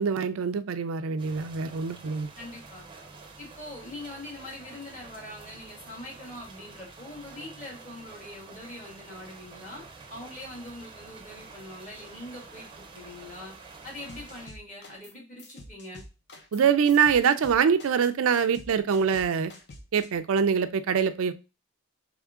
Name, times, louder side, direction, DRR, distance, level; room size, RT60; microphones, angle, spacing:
voice 1, 0.0-2.3 16.5-19.5 19.9-21.3, right 6 dB, 75° right, 10 dB, 0.4 m, -24 dB
sound 1, 1.2-14.5, right 4 dB, 25° right, 0.6 m, -48 dB
voice 2, 2.4-2.9 3.4-9.8 10.1-13.5 13.8-16.0, left 1 dB, 35° left, -2 dB, 1.9 m, -43 dB
sound 2, 14.1-15.1 15.4-20.1, left 1 dB, 50° left, 0.7 m, -47 dB
3.6 x 3.6 x 3.5 m, 0.29 s
head